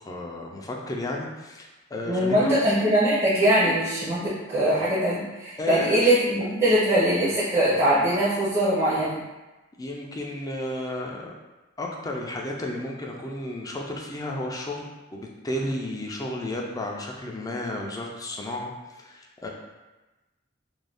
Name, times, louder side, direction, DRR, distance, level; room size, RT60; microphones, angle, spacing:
voice 1, 0.0-2.6 5.6-6.0 9.8-11.3 11.8-19.5, left 1 dB, 20° left, -1 dB, 0.3 m, -33 dB
voice 2, 2.1-9.2, right 1 dB, 30° right, -9 dB, 0.6 m, -22 dB
2.5 x 2.2 x 3.3 m, 1.1 s
head